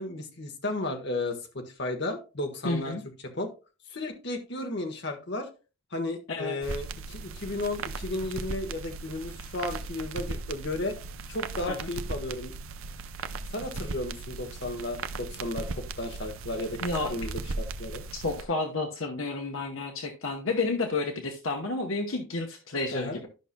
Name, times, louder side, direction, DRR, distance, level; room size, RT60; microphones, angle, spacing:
voice 1, 0.0-2.9 3.2-3.5 3.9-5.5 5.9-11.0 11.3-12.5 13.5-16.8 17.1-18.0 22.9-23.2, left 2 dB, 55° left, 4 dB, 1.3 m, -34 dB
voice 2, 2.6-3.0 6.3-6.6 11.7-11.8 16.8-17.1 18.1-23.3, left 3 dB, 70° left, 3 dB, 1.0 m, -30 dB
sound 1, 6.6-18.4, right 3 dB, 75° right, 0.6 m, -37 dB
12.5 x 5.6 x 2.2 m, 0.31 s
head